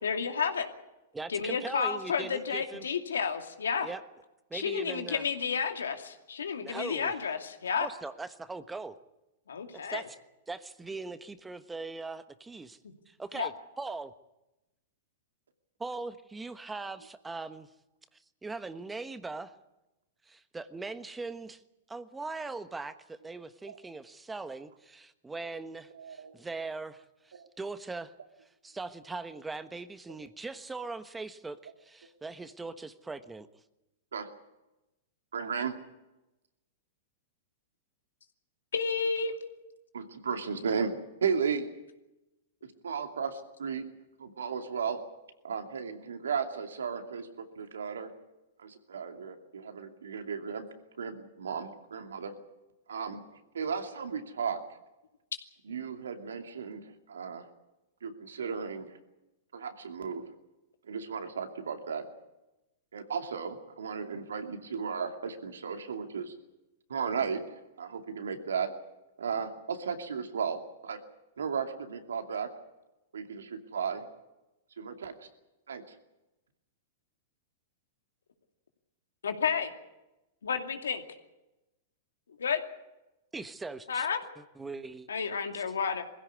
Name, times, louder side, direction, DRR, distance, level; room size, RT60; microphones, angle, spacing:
voice 1, 0.0-0.7 1.3-3.9 4.5-7.4 7.6-7.9 9.5-10.0 13.3-13.5 38.7-39.3 79.2-79.7 80.4-81.0 82.4-82.6 83.9-84.2 85.1-86.0, left 6 dB, 85° left, 6 dB, 2.5 m, -31 dB
voice 2, 1.1-2.8 3.8-4.0 4.5-5.2 6.6-7.1 7.8-9.0 9.9-10.1 10.5-12.8 13.1-13.5 13.8-14.1 15.8-17.7 18.1-19.5 20.2-21.6 21.9-28.1 28.6-33.5 83.3-84.1 84.4-85.1 85.5-85.6, right 3 dB, 10° right, 12 dB, 1.3 m, -40 dB
voice 3, 25.9-26.3 27.3-27.5 34.1-34.3 35.3-35.8 39.9-41.7 42.8-43.9 44.2-45.0 45.4-47.3 47.6-48.1 48.6-50.7 51.0-52.3 52.9-53.2 53.5-54.6 55.7-57.5 58.0-59.0 59.5-60.2 60.9-62.1 62.9-66.3 66.9-68.7 69.2-71.0 71.4-72.5 73.1-74.0 74.8-75.3 75.7-75.8, right 6 dB, 85° right, 6 dB, 2.7 m, -35 dB
21.5 x 16.0 x 9.7 m, 0.98 s
hypercardioid pair, 115°, 0 cm